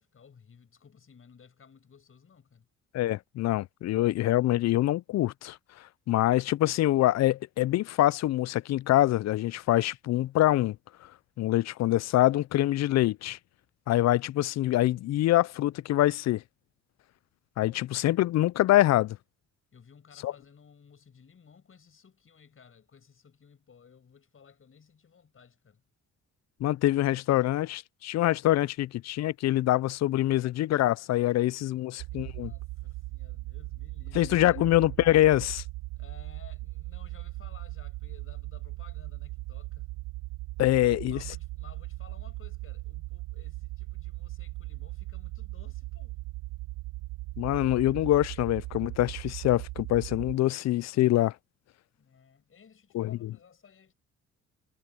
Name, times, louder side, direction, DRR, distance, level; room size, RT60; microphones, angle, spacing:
voice 1, 0.0-2.7 19.7-25.8 32.1-34.6 35.9-39.9 40.8-46.2 51.9-53.9, left 6 dB, 45° left, 7.1 m, -56 dB
voice 2, 2.9-5.6 6.1-10.8 11.4-13.4 13.9-16.4 17.6-19.2 20.2-20.3 26.6-32.5 34.2-35.6 40.6-41.2 47.4-51.3 52.9-53.3, left 15 dB, 60° left, 0.4 m, -25 dB
sound 1, 32.0-50.4, right 20 dB, 80° right, 0.7 m, -39 dB
cardioid pair, 90°, 30 cm